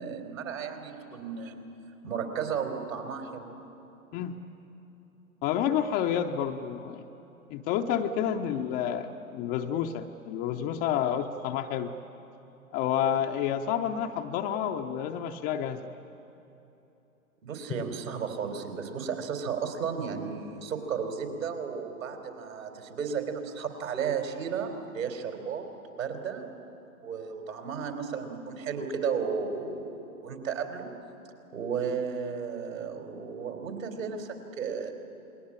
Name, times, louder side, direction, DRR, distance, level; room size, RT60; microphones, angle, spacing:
voice 1, 0.0-1.6 2.0-3.5 17.4-26.5 27.0-30.9 31.5-34.9, right 6 dB, 65° right, 5 dB, 3.9 m, -34 dB
voice 2, 5.4-7.0 7.5-11.9 12.7-15.9, left 9 dB, 20° left, 5 dB, 0.6 m, -29 dB
28.5 x 21.5 x 8.7 m, 3.0 s
figure-of-eight pair, 110°, 43 cm